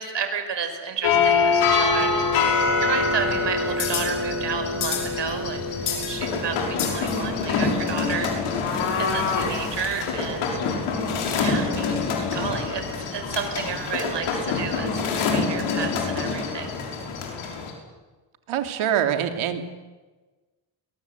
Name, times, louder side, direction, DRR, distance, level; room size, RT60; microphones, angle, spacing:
voice 1, 0.0-2.3 2.8-8.3 8.6-8.7 9.0-10.5 11.4-16.7, right 6 dB, 60° right, 7 dB, 5.5 m, -31 dB
sound 1, 1.0-17.7, left 4 dB, 85° left, 6.1 m, -25 dB
voice 2, 18.5-19.6, right 10 dB, 75° right, 7 dB, 2.9 m, -24 dB
23.0 x 22.0 x 8.1 m, 1.3 s
cardioid pair, 85°, 49 cm